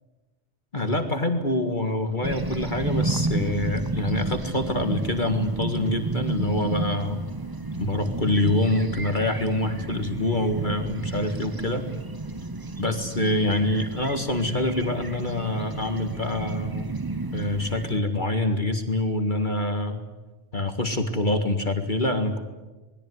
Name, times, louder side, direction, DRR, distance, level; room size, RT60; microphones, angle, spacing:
voice 1, 0.7-7.2 7.8-11.9 12.8-16.9 17.3-20.0 20.5-22.4, left 1 dB, 40° left, 6 dB, 2.0 m, -26 dB
sound 1, 2.2-18.0, right 2 dB, 20° right, 0.8 m, -31 dB
27.0 x 21.0 x 9.7 m, 1.2 s
omnidirectional pair, 1.2 m